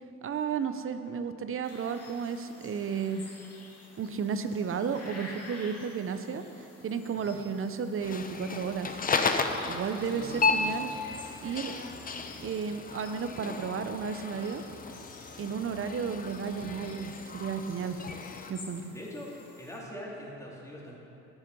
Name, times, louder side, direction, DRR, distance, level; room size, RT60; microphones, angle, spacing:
voice 1, 0.2-3.2 4.0-9.0 9.6-10.9 11.4-11.7 12.4-14.6 15.4-18.0 18.5-18.9, right 6 dB, 45° right, 9 dB, 0.7 m, -33 dB
sound 1, 1.6-19.8, left 2 dB, 55° left, 2.1 m, -51 dB
sound 2, 8.0-18.5, left 4 dB, 30° left, 0.7 m, -34 dB
voice 2, 10.0-11.0 18.9-19.3 19.6-21.0, equal, 10° left, -5 dB, 2.6 m, -43 dB
10.5 x 8.1 x 5.3 m, 2.9 s
cardioid pair, 90°, 30 cm